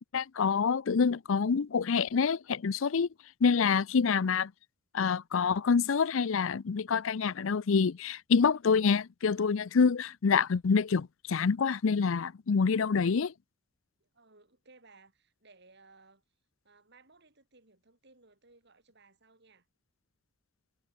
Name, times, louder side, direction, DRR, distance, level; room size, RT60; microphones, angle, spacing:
voice 1, 0.1-3.1 3.4-4.5 4.9-13.3, left 5 dB, 70° left, 0.5 m, -27 dB
voice 2, 4.0-4.4 14.0-16.2 16.6-19.7, right 3 dB, 55° right, 5.4 m, -61 dB
head